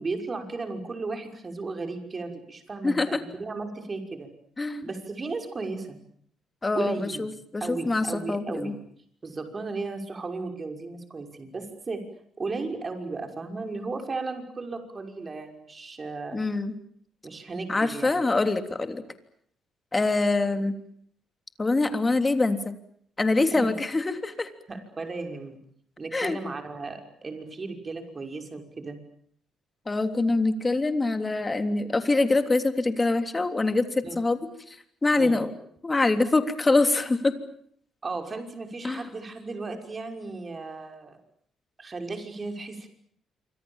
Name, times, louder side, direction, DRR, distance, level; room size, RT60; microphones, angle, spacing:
voice 1, 0.0-4.3 4.8-6.0 6.7-7.3 7.6-8.8 9.2-12.0 12.4-16.4 17.2-18.2 23.5-23.7 24.7-25.6 26.0-29.0 34.0-34.2 35.2-35.4 38.0-41.2 41.8-42.9, right 3 dB, 35° right, 5 dB, 6.0 m, -35 dB
voice 2, 2.8-3.2 4.6-4.8 6.6-8.7 16.3-16.7 17.7-19.0 19.9-20.8 21.6-22.6 23.2-24.5 26.1-26.4 29.9-34.4 34.7-34.8 35.0-35.5 35.8-37.3 38.8-39.0, left 3 dB, 20° left, 8 dB, 3.3 m, -24 dB
27.5 x 25.5 x 7.4 m, 0.65 s
cardioid pair, 90°, 0 cm